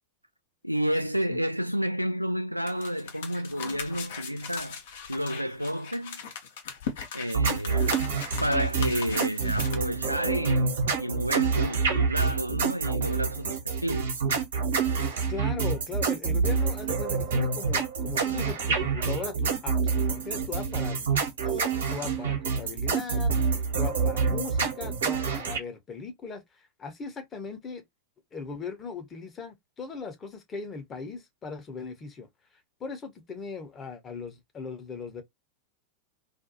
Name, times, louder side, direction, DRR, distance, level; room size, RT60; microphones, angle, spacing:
voice 1, 0.6-4.8 5.1-6.2 7.1-8.0 8.4-14.1, equal, 90° right, 0.3 m, -30 dB
sound 1, 2.7-9.7, left 7 dB, 55° left, 0.7 m, -39 dB
sound 2, 7.3-25.6, right 5 dB, 65° right, 1.0 m, -27 dB
voice 2, 15.3-23.3 23.8-27.8 28.3-32.3 32.8-35.2, left 4 dB, 25° left, 0.8 m, -38 dB
2.5 x 2.3 x 2.7 m
figure-of-eight pair, 90°, 0 cm